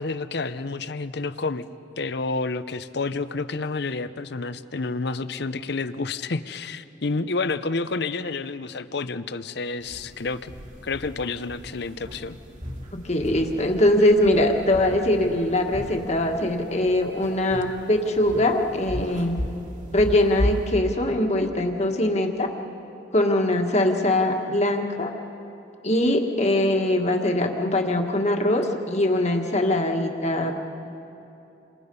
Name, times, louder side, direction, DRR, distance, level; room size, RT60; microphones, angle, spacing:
voice 1, 0.0-1.7 2.0-10.5 10.8-12.4, left 3 dB, 65° left, 13 dB, 0.7 m, -29 dB
sound 1, 9.8-20.7, equal, 40° right, 2.8 m, -35 dB
voice 2, 13.0-19.4 19.9-22.5 23.1-25.1 25.8-30.5, left 1 dB, 35° left, 3 dB, 1.7 m, -22 dB
28.5 x 26.5 x 5.5 m, 2.9 s
head